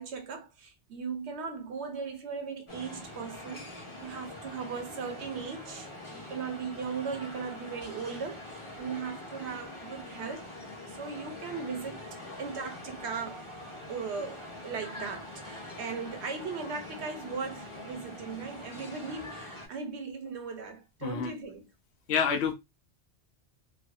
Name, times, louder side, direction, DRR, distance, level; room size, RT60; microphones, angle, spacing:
voice 1, 0.0-10.5 10.9-12.0 12.4-13.5 13.9-21.7, right 5 dB, 75° right, 1.0 m, -38 dB
sound 1, 2.7-19.7, left 1 dB, 25° left, 1.0 m, -44 dB
voice 2, 22.1-22.5, left 6 dB, 70° left, 0.9 m, -27 dB
3.1 x 2.1 x 2.5 m
omnidirectional pair, 1.2 m